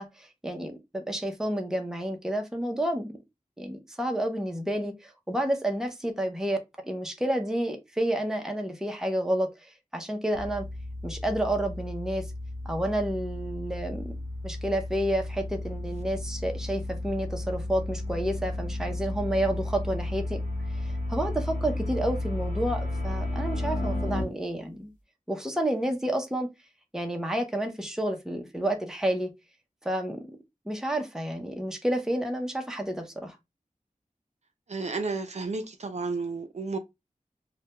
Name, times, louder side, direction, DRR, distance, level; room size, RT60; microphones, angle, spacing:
voice 1, 0.0-3.2 3.6-6.6 6.8-10.7 11.0-12.3 12.6-14.2 14.4-20.4 20.8-24.9 25.3-26.5 26.9-29.3 29.8-30.3 30.7-33.4, right 1 dB, 5° right, 0.5 m, -30 dB
sound 1, 10.3-24.2, left 1 dB, 70° left, 0.9 m, -33 dB
voice 2, 34.7-36.8, right 3 dB, 55° right, 0.4 m, -32 dB
2.2 x 2.1 x 2.8 m
wide cardioid pair, 55°, 14 cm